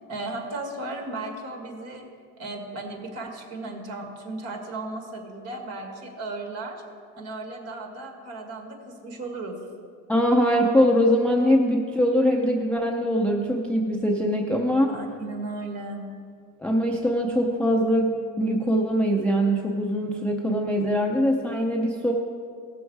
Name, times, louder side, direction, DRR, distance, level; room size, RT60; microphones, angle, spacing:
voice 1, 0.1-2.1 2.4-6.8 7.2-9.6 14.9-16.0, right 2 dB, 40° right, 3 dB, 1.7 m, -35 dB
voice 2, 10.1-14.9 16.6-22.1, equal, 5° left, 0 dB, 0.4 m, -22 dB
16.5 x 6.3 x 4.6 m, 2.2 s
cardioid pair, 160°, 37 cm